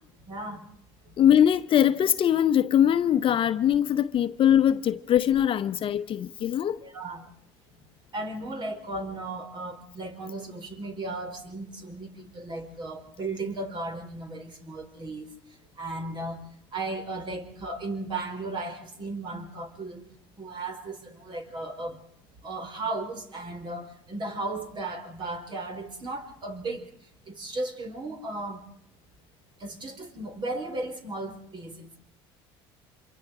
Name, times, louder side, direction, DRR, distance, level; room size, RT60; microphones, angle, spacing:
voice 1, 0.3-0.6 6.8-7.3 8.1-15.3 15.8-16.4 16.7-20.0 20.4-22.0 22.4-26.9 27.3-28.7 29.6-32.0, right 2 dB, 40° right, 4.8 m, -35 dB
voice 2, 1.2-6.8, left 10 dB, 45° left, 0.9 m, -22 dB
27.0 x 23.5 x 4.9 m
supercardioid pair, 85°, 12 cm